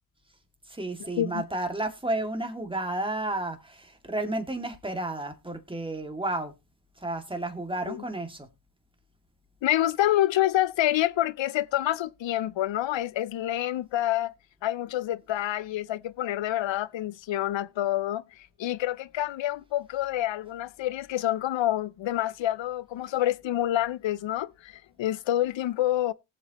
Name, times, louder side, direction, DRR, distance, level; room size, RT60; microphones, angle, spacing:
voice 1, 0.7-6.5 7.0-8.5, right 2 dB, 10° right, 2.3 m, -32 dB
voice 2, 9.6-14.3 14.6-18.2 18.6-26.1, left 13 dB, 65° left, 0.7 m, -27 dB
18.5 x 7.5 x 3.0 m
cardioid pair, 60°, 50 cm